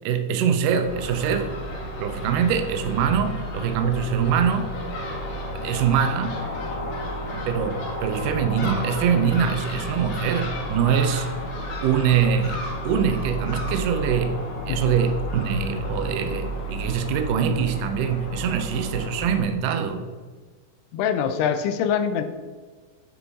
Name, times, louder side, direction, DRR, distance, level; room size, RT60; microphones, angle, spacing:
voice 1, 0.0-1.5 2.0-4.7 5.5-6.4 7.3-11.3 11.8-14.4 14.7-20.1, right 7 dB, 80° right, 7 dB, 1.9 m, -23 dB
Crow / Gull seagull, 0.8-19.4, equal, 70° left, 3.0 m, -32 dB
voice 2, 20.9-22.2, left 8 dB, 90° left, 9 dB, 2.7 m, -23 dB
8.9 x 4.5 x 4.0 m, 1.4 s
omnidirectional pair, 4.5 m